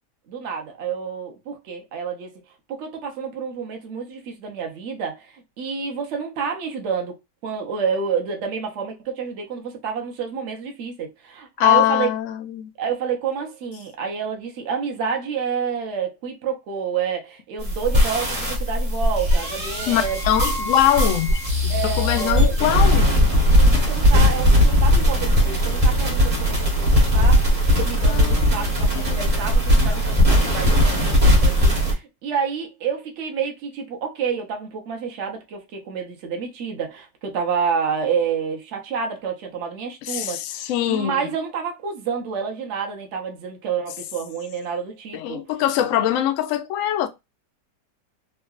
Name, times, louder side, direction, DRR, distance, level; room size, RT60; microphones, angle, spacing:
voice 1, 0.3-2.3 2.7-7.2 7.4-12.1 12.8-20.2 21.7-22.6 23.5-45.4 45.9-46.0, right 6 dB, 55° right, 0.9 m, -29 dB
voice 2, 11.6-12.7 19.9-23.0 28.1-28.7 28.9-29.2 40.1-41.3 45.1-47.1, left 12 dB, 75° left, 0.7 m, -22 dB
sound 1, 17.6-31.9, equal, 25° right, 0.9 m, -18 dB
3.7 x 2.2 x 2.3 m
omnidirectional pair, 1.8 m